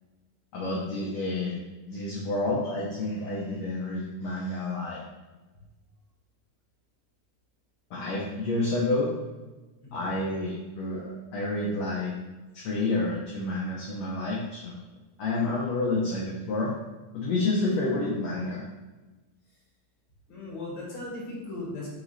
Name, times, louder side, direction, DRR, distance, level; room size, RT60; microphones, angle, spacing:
voice 1, 0.5-1.6 1.9-5.0 7.9-9.1 9.9-12.1 12.5-14.7 15.2-16.7 17.1-18.6, left 2 dB, 70° left, -4 dB, 1.6 m, -29 dB
voice 2, 9.8-10.2 20.3-21.9, left 2 dB, 50° left, -5 dB, 1.8 m, -37 dB
5.0 x 4.7 x 4.0 m, 1.2 s
omnidirectional pair, 4.0 m